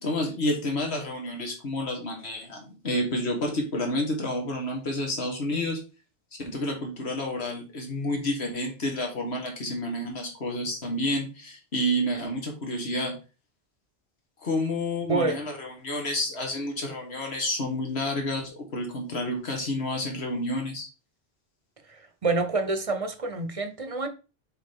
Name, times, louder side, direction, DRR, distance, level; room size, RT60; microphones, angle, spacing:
voice 1, 0.0-5.8 6.5-13.1 14.4-20.9, left 1 dB, 85° left, 1.9 m, -29 dB
voice 2, 15.1-15.4 21.9-24.1, right 3 dB, 35° right, 0.7 m, -27 dB
6.8 x 4.9 x 3.6 m
omnidirectional pair, 1.1 m